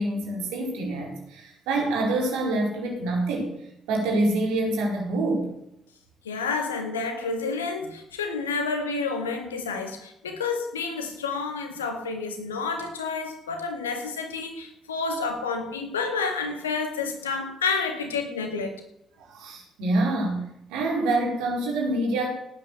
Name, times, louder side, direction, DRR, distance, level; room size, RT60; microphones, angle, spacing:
voice 1, 0.0-3.5 3.9-5.5 19.2-22.3, right 2 dB, 70° right, 1 dB, 4.5 m, -26 dB
voice 2, 6.2-18.7, left 4 dB, 85° left, 5 dB, 2.0 m, -29 dB
17.5 x 9.5 x 6.7 m, 0.81 s
hypercardioid pair, 45°, 0 cm